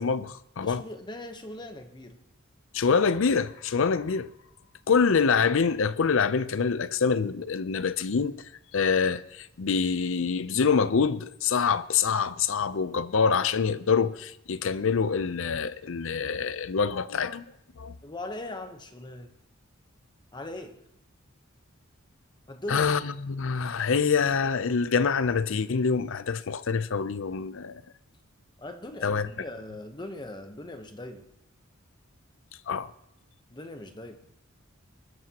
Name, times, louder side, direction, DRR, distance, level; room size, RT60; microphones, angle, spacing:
voice 1, 0.0-0.8 2.7-4.3 4.9-8.4 8.7-17.4 17.8-17.9 22.7-27.8 29.0-29.3 32.7-32.9, left 5 dB, 65° left, 0.6 m, -25 dB
voice 2, 0.6-2.2 18.0-19.3 20.3-20.8 22.5-22.9 28.6-31.3 33.5-34.2, left 1 dB, 20° left, 1.0 m, -40 dB
21.5 x 12.5 x 2.9 m
head